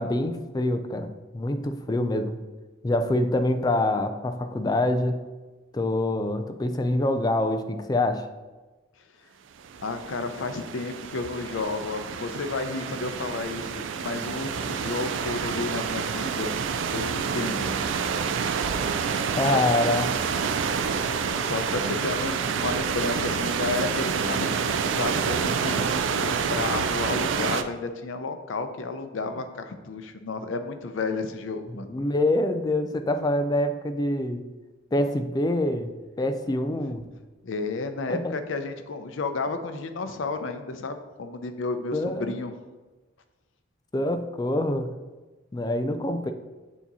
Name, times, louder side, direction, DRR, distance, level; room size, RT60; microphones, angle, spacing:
voice 1, 0.0-2.4 2.8-5.2 5.7-8.3 19.3-20.1 31.9-34.5 34.9-35.9 36.2-37.0 38.1-38.3 41.9-42.4 43.9-44.9 45.5-46.3, left 1 dB, 20° left, 7 dB, 0.3 m, -25 dB
sound 1, 9.6-27.6, right 6 dB, 65° right, 0.3 m, -28 dB
voice 2, 9.8-16.6 16.9-17.8 19.4-19.6 21.0-21.1 21.4-25.9 26.2-31.9 37.4-42.5, left 3 dB, 70° left, 8 dB, 0.5 m, -32 dB
8.3 x 2.9 x 4.1 m, 1.2 s
head